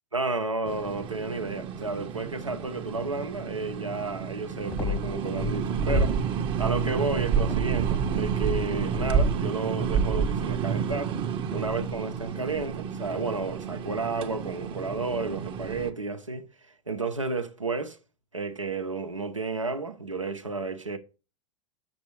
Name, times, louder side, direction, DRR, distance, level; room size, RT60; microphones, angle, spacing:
voice 1, 0.1-6.2 6.6-11.2 11.5-16.5 16.9-18.0 18.3-21.0, right 3 dB, 90° right, 0.8 m, -32 dB
sound 1, 0.7-15.9, right 7 dB, 30° right, 0.8 m, -30 dB
sound 2, 4.7-6.3 6.6-9.4, left 8 dB, 15° left, 0.4 m, -35 dB
6.9 x 6.1 x 3.0 m
figure-of-eight pair, 85°, 16 cm